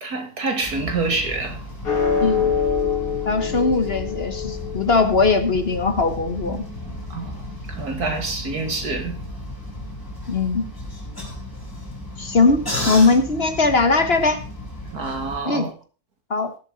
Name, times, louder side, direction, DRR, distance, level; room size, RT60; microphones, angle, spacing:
voice 1, 0.0-1.6 7.1-9.2 14.9-15.7, right 3 dB, 75° right, 2.9 m, -27 dB
sound 1, 0.6-15.4, left 1 dB, 15° left, 4.1 m, -34 dB
sound 2, 1.8-8.4, left 6 dB, 65° left, 3.6 m, -27 dB
voice 2, 2.2-2.5 3.2-6.6 10.3-10.7 12.2-14.4 15.4-15.7 16.3-16.5, left 3 dB, 40° left, 1.3 m, -20 dB
18.0 x 7.5 x 4.0 m
omnidirectional pair, 1.7 m